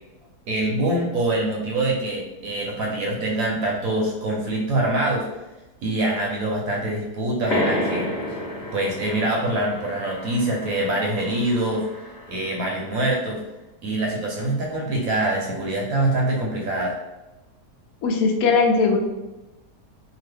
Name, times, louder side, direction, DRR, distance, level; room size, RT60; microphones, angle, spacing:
voice 1, 0.5-5.3 5.8-8.4 8.7-13.4 13.8-17.0, right 1 dB, 65° right, -1 dB, 1.0 m, -24 dB
sound 1, 7.5-12.7, left 1 dB, 50° left, 1.0 m, -31 dB
voice 2, 18.0-19.0, left 4 dB, 70° left, 2 dB, 0.9 m, -19 dB
2.9 x 2.3 x 3.3 m, 1.0 s
omnidirectional pair, 1.7 m